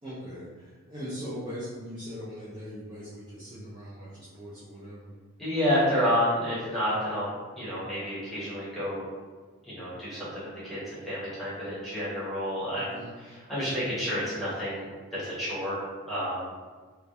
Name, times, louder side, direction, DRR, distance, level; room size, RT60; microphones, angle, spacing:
voice 1, 0.0-5.2 12.8-13.2, equal, 25° right, -11 dB, 0.4 m, -40 dB
voice 2, 5.4-7.2 7.5-9.0 9.6-16.5, equal, ahead, -12 dB, 0.8 m, -30 dB
2.2 x 2.0 x 2.8 m, 1.4 s
head